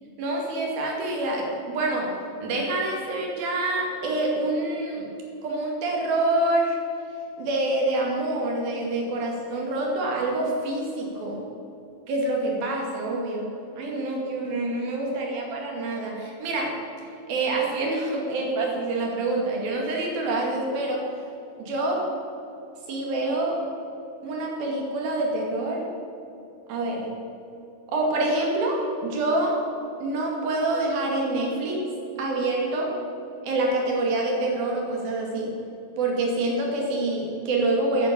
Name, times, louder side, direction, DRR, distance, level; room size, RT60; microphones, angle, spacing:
voice 1, 0.2-2.1 2.4-5.1 5.4-6.8 7.4-11.4 12.1-13.5 13.8-16.7 17.3-21.0 21.6-22.1 22.9-23.6 24.2-25.8 26.7-27.1 27.9-29.6 30.0-31.8 32.2-32.9 33.4-35.5 36.0-38.1, right 2 dB, 85° right, -1 dB, 4.1 m, -26 dB
9.9 x 9.3 x 8.5 m, 2.8 s
omnidirectional pair, 4.1 m